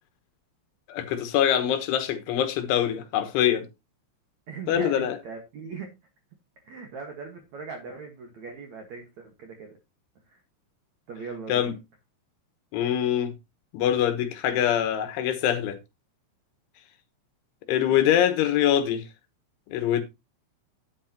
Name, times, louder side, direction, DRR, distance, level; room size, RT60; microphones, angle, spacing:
voice 1, 0.9-3.7 4.7-5.2 11.5-11.7 12.7-13.3 13.7-15.8 17.7-19.0 19.7-20.0, left 10 dB, 75° left, 3.3 m, -24 dB
voice 2, 4.5-6.0 6.6-9.8 10.3-10.4 11.1-11.7 17.9-18.1, right 5 dB, 80° right, 1.6 m, -40 dB
11.0 x 8.9 x 2.9 m
omnidirectional pair, 5.9 m